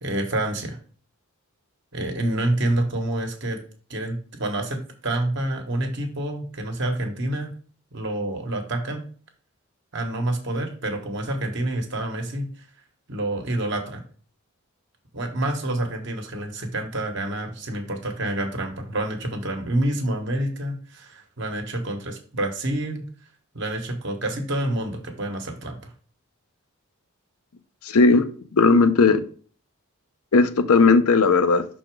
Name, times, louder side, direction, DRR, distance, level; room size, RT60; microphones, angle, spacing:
voice 1, 0.0-0.8 1.9-3.6 3.9-7.5 7.9-9.0 9.9-12.5 13.1-14.0 15.1-23.0 23.5-25.9, right 1 dB, 55° right, 1.3 m, -28 dB
voice 2, 27.8-28.2 28.5-29.2 30.3-31.7, left 4 dB, 80° left, 0.6 m, -16 dB
6.0 x 4.1 x 4.6 m
head